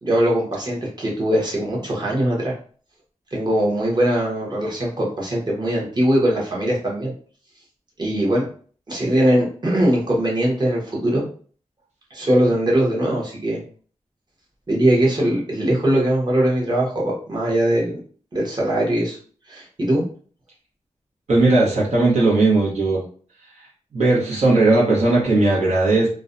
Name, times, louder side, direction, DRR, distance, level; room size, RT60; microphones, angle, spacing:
voice 1, 0.0-2.5 3.3-7.1 8.0-8.5 8.9-11.3 12.1-13.6 14.7-17.9 18.3-19.2 19.5-20.1, right 1 dB, 35° right, -3 dB, 1.0 m, -21 dB
voice 2, 21.3-23.0 23.6-23.7 23.9-26.1, right 2 dB, 70° right, -5 dB, 1.0 m, -17 dB
2.5 x 2.1 x 2.5 m, 0.43 s
cardioid pair, 65°, 12 cm